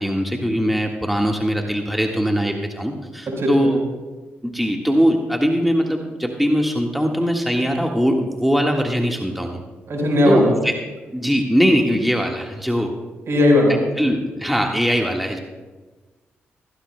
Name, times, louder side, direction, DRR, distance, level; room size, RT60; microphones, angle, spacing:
voice 1, 0.0-3.8 4.4-9.6 10.3-10.7 11.1-12.9 14.0-15.4, equal, ahead, 1 dB, 1.6 m, -21 dB
voice 2, 3.4-3.7 9.9-10.5 13.3-13.7, left 1 dB, 65° right, 0 dB, 4.6 m, -17 dB
16.0 x 16.0 x 2.2 m, 1.3 s
hypercardioid pair, 45°, 5 cm